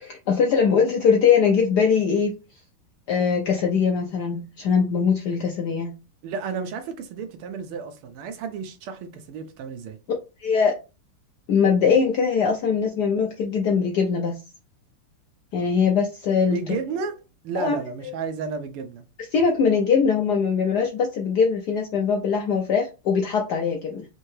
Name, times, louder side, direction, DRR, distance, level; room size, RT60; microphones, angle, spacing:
voice 1, 0.3-2.4 3.1-5.9 10.4-10.8 11.5-14.4 15.5-16.6 17.6-17.8 19.3-24.1, left 6 dB, 75° left, 0.9 m, -21 dB
voice 2, 6.2-10.0 16.5-19.0, right 5 dB, 90° right, 1.6 m, -32 dB
4.3 x 2.8 x 3.1 m
omnidirectional pair, 2.4 m